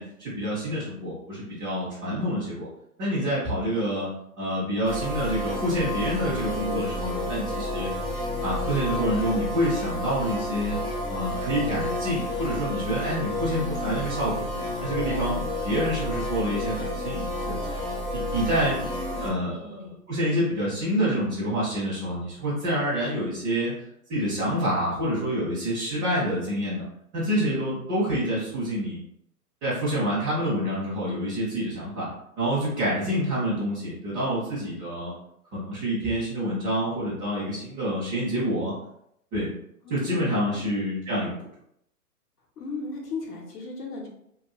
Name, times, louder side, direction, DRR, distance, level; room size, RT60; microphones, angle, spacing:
voice 1, 0.0-2.7 3.0-4.1 4.4-7.9 8.4-10.8 11.1-14.4 14.8-15.4 15.6-17.6 18.1-18.8 19.2-19.8 20.1-23.7 24.1-26.8 27.1-29.0 29.6-32.1 32.4-35.1 35.5-38.7 39.3-39.5 39.9-41.4, equal, 15° right, -10 dB, 0.5 m, -27 dB
sound 1, 4.8-19.3, left 1 dB, 10° left, 0.8 m, -30 dB
voice 2, 18.7-20.0 39.8-40.8 42.6-44.1, left 3 dB, 75° left, -3 dB, 1.0 m, -37 dB
2.8 x 2.4 x 2.3 m, 0.76 s
hypercardioid pair, 125°, 47 cm